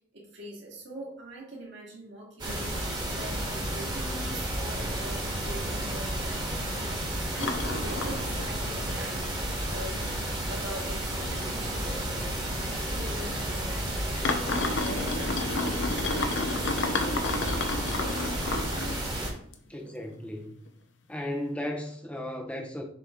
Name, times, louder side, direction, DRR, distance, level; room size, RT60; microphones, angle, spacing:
voice 1, 0.1-18.3, right 1 dB, 60° right, 2.1 m, -43 dB
sound 1, 2.4-19.3, right 1 dB, 20° right, 1.6 m, -32 dB
sound 2, 7.4-8.8 9.2-9.3 10.0-10.1 10.6-10.8 11.1-11.2 12.2-12.3 13.0-13.1 14.2-19.1 19.5-20.2 20.7-20.8, left 3 dB, 60° left, 0.8 m, -31 dB
voice 2, 19.7-20.5 21.1-22.8, left 1 dB, 5° left, 0.9 m, -35 dB
6.8 x 4.4 x 3.6 m
head